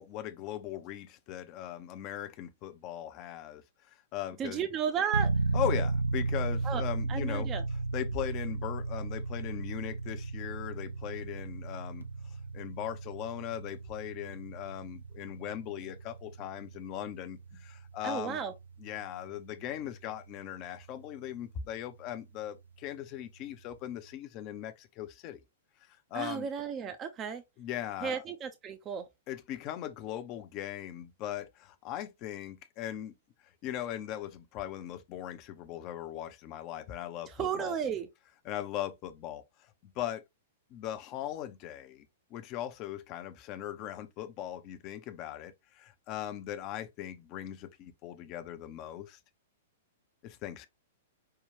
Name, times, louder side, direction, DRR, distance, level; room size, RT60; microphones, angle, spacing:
voice 1, 0.0-4.6 5.5-7.5 7.9-18.4 18.8-25.4 25.9-26.5 27.6-28.2 29.3-33.1 33.6-37.7 38.4-40.2 40.7-42.1 42.3-49.2 50.2-50.7, left 11 dB, 35° left, 0.7 m, -39 dB
voice 2, 4.4-5.3 6.6-6.8 7.1-7.6 18.0-18.5 26.1-27.4 28.0-29.1 37.3-38.1, right 7 dB, 25° right, 0.6 m, -33 dB
sound 1, 5.1-21.9, right 3 dB, 85° right, 0.5 m, -35 dB
5.5 x 2.3 x 3.4 m
figure-of-eight pair, 105°, 0 cm